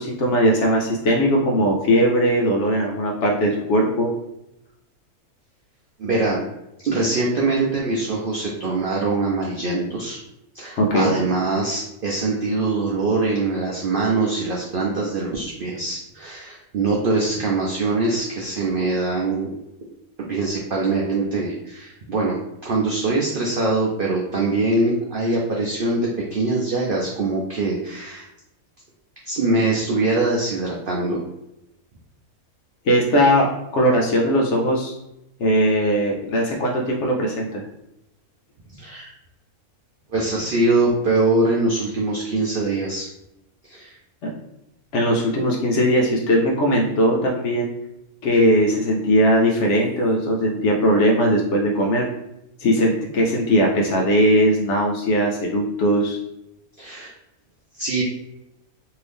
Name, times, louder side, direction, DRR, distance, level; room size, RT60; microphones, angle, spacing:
voice 1, 0.0-4.1 10.8-11.2 32.9-34.9 35.4-37.6 44.2-44.3 44.9-47.7 48.2-52.1 52.6-56.2, equal, 65° left, 0 dB, 0.8 m, -19 dB
voice 2, 6.0-6.4 6.8-10.2 10.5-19.5 20.2-22.4 22.6-28.3 29.3-31.2 38.8-39.1 40.1-43.1 43.7-43.9 56.8-57.1 57.8-58.0, right 3 dB, 70° right, -2 dB, 0.5 m, -23 dB
2.7 x 2.7 x 3.3 m, 0.87 s
omnidirectional pair, 1.6 m